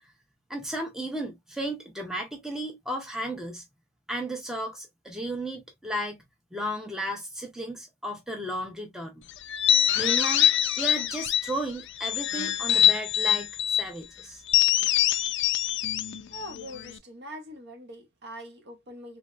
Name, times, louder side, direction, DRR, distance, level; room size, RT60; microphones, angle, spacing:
voice 1, 0.5-3.6 4.1-6.2 6.5-9.2 9.9-14.4, right 1 dB, ahead, 0.6 m, -34 dB
sound 1, 9.5-11.6 12.0-13.9 14.5-17.0, left 11 dB, 55° left, 0.3 m, -24 dB
voice 2, 16.3-19.2, equal, 50° right, 0.8 m, -43 dB
3.2 x 2.6 x 2.2 m
head